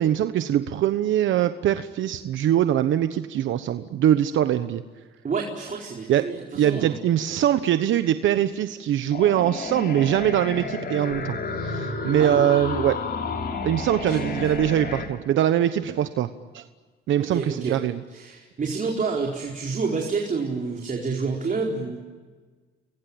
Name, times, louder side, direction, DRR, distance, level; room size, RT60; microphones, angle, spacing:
voice 1, 0.0-4.8 6.1-13.0 13.6-16.7 17.1-18.0, right 11 dB, 80° right, 10 dB, 1.1 m, -23 dB
voice 2, 5.2-7.0 12.2-12.5 14.0-14.4 17.2-17.8 18.1-22.0, right 4 dB, 40° right, 0 dB, 4.5 m, -29 dB
sound 1, 9.1-15.1, left 3 dB, 55° left, 4.6 m, -31 dB
29.5 x 21.5 x 8.8 m, 1.4 s
cardioid pair, 90°, 20 cm